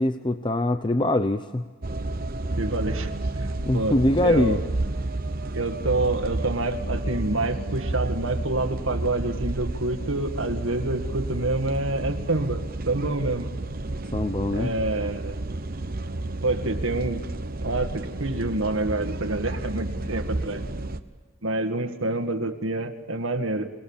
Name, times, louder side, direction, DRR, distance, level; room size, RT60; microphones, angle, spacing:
voice 1, 0.0-1.6 3.6-4.6 14.1-14.7, left 1 dB, 20° left, 9 dB, 0.6 m, -23 dB
sound 1, 1.8-21.0, right 2 dB, 45° right, 1.0 m, -31 dB
voice 2, 2.6-4.6 5.5-13.5 14.5-15.4 16.4-17.2 17.6-20.7 21.4-23.7, right 2 dB, 75° right, 6 dB, 1.8 m, -27 dB
28.5 x 19.0 x 7.3 m, 1.4 s
head